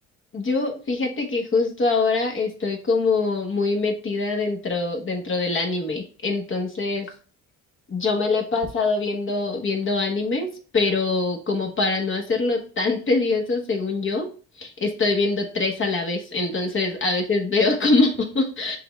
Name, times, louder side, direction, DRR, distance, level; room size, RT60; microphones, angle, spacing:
voice 1, 0.3-7.1 7.9-14.3 14.6-18.8, left 3 dB, 40° left, 2 dB, 1.2 m, -24 dB
6.7 x 2.3 x 3.1 m, 0.38 s
cardioid pair, 90°, 30 cm